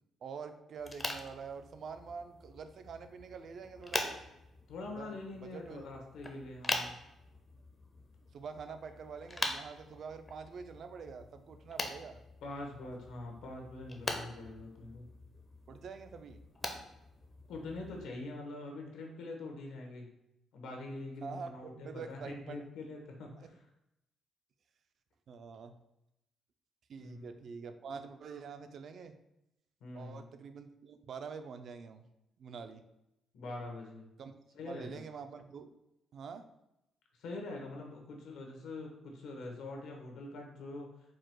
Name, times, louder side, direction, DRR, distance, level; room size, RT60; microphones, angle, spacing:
voice 1, 0.2-4.1 4.9-5.8 8.3-12.2 15.7-16.4 21.2-22.6 23.4-23.5 25.3-25.8 26.9-29.1 29.9-32.1 32.4-32.8 34.2-34.3 34.6-35.8 36.1-36.5, right 5 dB, 50° right, 9 dB, 0.4 m, -46 dB
sound 1, 0.8-18.1, left 2 dB, 20° left, 0.5 m, -43 dB
voice 2, 4.7-7.0 12.4-15.1 17.5-20.1 20.5-23.6 27.0-27.4 29.8-30.3 33.3-34.0 34.5-35.0 37.2-40.9, left 2 dB, 90° left, 1 dB, 1.1 m, -44 dB
4.8 x 2.3 x 4.4 m, 0.86 s
cardioid pair, 145°, 0 cm